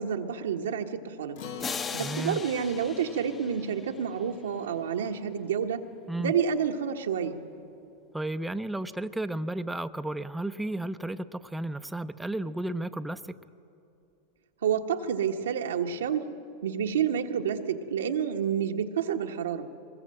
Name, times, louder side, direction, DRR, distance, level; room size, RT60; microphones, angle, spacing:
voice 1, 0.0-1.4 1.9-5.9 6.2-7.4 14.6-16.2 16.6-19.7, right 7 dB, 85° right, 4 dB, 1.3 m, -29 dB
Acoustic guitar, 1.4-6.1, left 7 dB, 75° left, 2.2 m, -46 dB
sound 1, 1.6-4.5, left 5 dB, 25° left, 0.9 m, -39 dB
voice 2, 2.0-2.4 6.1-6.3 8.1-13.3, right 1 dB, 5° right, 9 dB, 0.6 m, -33 dB
22.5 x 20.5 x 7.8 m, 2.7 s
hypercardioid pair, 115°, 0 cm